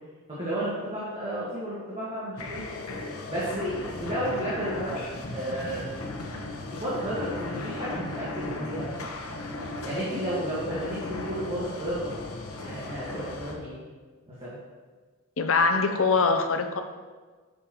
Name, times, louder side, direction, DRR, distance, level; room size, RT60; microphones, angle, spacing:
voice 1, 0.3-2.6 3.3-5.0 5.3-5.8 6.7-8.9 9.8-12.1 12.6-13.7 14.3-14.5, right 1 dB, 25° right, -9 dB, 1.6 m, -32 dB
sound 1, 2.4-13.5, left 2 dB, 85° left, 0.9 m, -36 dB
voice 2, 15.4-16.8, left 4 dB, 65° left, 7 dB, 0.6 m, -23 dB
8.4 x 6.6 x 3.0 m, 1.4 s
head